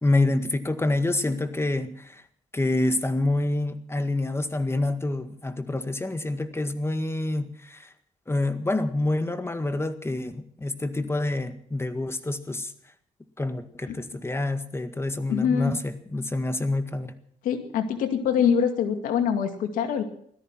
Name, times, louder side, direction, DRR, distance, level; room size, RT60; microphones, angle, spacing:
voice 1, 0.0-2.2 2.5-7.9 8.3-12.7 13.4-17.1, left 2 dB, 20° left, 10 dB, 1.8 m, -27 dB
voice 2, 15.3-15.7 17.4-20.0, left 7 dB, 85° left, 7 dB, 2.2 m, -24 dB
17.5 x 13.5 x 6.0 m, 0.64 s
cardioid pair, 65°, 14 cm